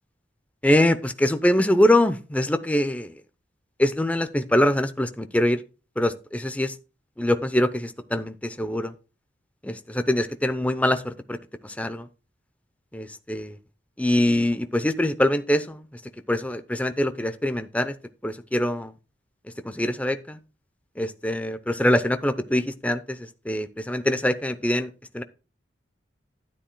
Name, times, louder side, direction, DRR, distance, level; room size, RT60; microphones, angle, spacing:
voice 1, 0.6-3.1 3.8-5.6 6.0-6.7 7.2-8.9 9.6-11.4 11.6-12.1 12.9-13.5 14.0-15.8 16.3-17.9 18.2-18.9 19.6-20.4 21.0-25.2, left 1 dB, 10° left, 10 dB, 0.6 m, -23 dB
12.0 x 10.0 x 2.2 m, 0.32 s
head